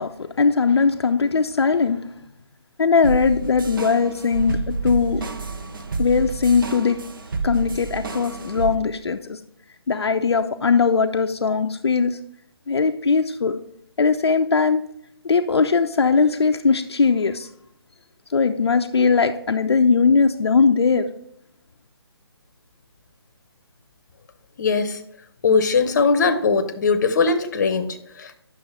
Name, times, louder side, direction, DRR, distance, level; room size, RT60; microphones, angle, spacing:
voice 1, 0.0-2.1 2.8-5.2 6.0-7.0 7.4-9.4 9.9-12.2 12.7-13.6 14.0-14.8 15.2-17.5 18.3-21.1, left 5 dB, 75° left, 5 dB, 0.5 m, -20 dB
sound 1, 3.0-8.8, right 4 dB, 50° right, 0.7 m, -29 dB
voice 2, 24.6-25.0 25.4-28.4, left 4 dB, 40° left, 10 dB, 0.8 m, -20 dB
8.7 x 6.2 x 3.5 m, 0.74 s
figure-of-eight pair, 150°, 14 cm